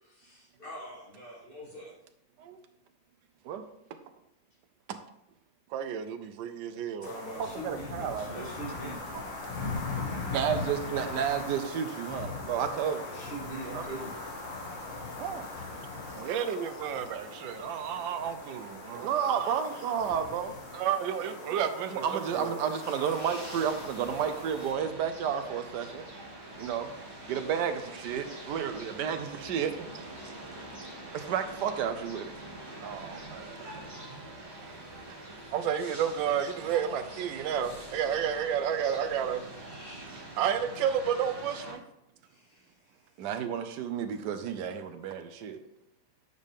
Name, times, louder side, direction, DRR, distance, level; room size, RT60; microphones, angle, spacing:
voice 1, 0.1-1.9 7.0-9.0 13.0-14.1 22.8-23.4 39.7-40.1 42.3-42.6, right 1 dB, 30° left, -4 dB, 2.3 m, -43 dB
voice 2, 5.7-7.1 16.2-19.6 20.7-22.6 32.8-33.7 35.5-39.4 40.4-41.8, right 8 dB, 90° right, 10 dB, 1.4 m, -31 dB
sound 1, 7.0-24.7, left 3 dB, 85° left, 2.3 m, -40 dB
voice 3, 7.5-8.5 9.1-9.3 10.1-13.0 13.7-13.8 15.2-15.5 16.3-16.4 18.9-20.6 21.9-26.0 26.6-26.9 27.3-29.9 31.1-32.3 33.7-33.8 34.6-35.2 43.2-45.6, right 8 dB, 70° right, 8 dB, 1.2 m, -32 dB
sound 2, 23.1-41.7, right 1 dB, 25° right, 2.0 m, -45 dB
8.4 x 5.2 x 3.5 m, 0.82 s
omnidirectional pair, 2.0 m